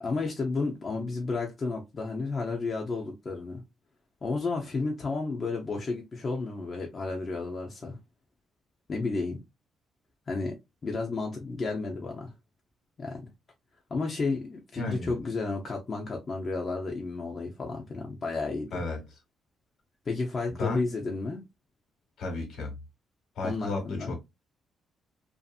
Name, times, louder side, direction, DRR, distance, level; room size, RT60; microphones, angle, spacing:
voice 1, 0.0-3.6 4.2-8.0 8.9-9.4 10.3-12.3 13.0-13.3 13.9-18.8 20.1-21.4 23.4-24.2, left 3 dB, 40° left, 0.7 m, -32 dB
voice 2, 14.8-15.1 18.7-19.0 20.6-20.8 22.2-22.7 23.4-24.2, left 3 dB, 75° left, 1.3 m, -33 dB
2.7 x 2.5 x 2.4 m
cardioid pair, 90°, 0 cm